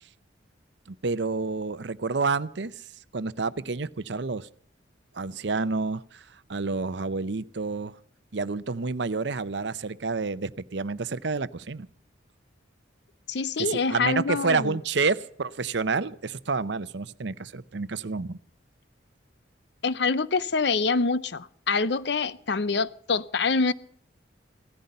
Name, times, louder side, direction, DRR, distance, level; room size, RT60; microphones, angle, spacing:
voice 1, 0.9-2.8 3.1-4.5 5.1-8.0 8.3-11.9 13.6-18.4, right 4 dB, 65° right, 0.7 m, -29 dB
voice 2, 13.3-14.8 19.8-23.7, left 4 dB, 60° left, 0.6 m, -25 dB
17.0 x 14.5 x 5.5 m
head